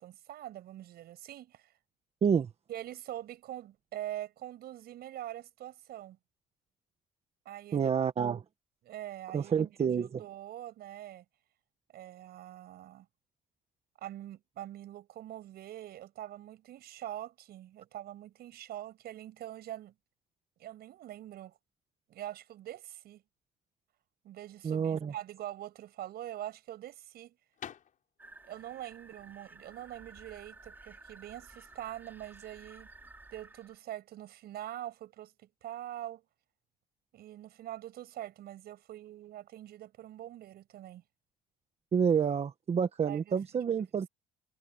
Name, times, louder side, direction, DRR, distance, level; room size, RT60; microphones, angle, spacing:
voice 1, 0.0-1.7 2.7-6.2 7.5-7.9 8.8-11.2 11.9-13.1 14.0-19.9 20.6-21.6 22.1-23.2 24.2-27.4 28.5-32.9 33.3-36.2 37.1-41.0 42.7-43.4, right 13 dB, 70° right, 7.0 m, -44 dB
voice 2, 7.7-8.4 9.3-10.2 24.6-25.1 41.9-44.1, right 7 dB, 40° right, 1.3 m, -28 dB
sound 1, 25.7-31.3, left 9 dB, 50° left, 5.4 m, -52 dB
sound 2, 28.2-33.8, right 2 dB, 10° right, 3.7 m, -54 dB
cardioid pair, 110°, 17 cm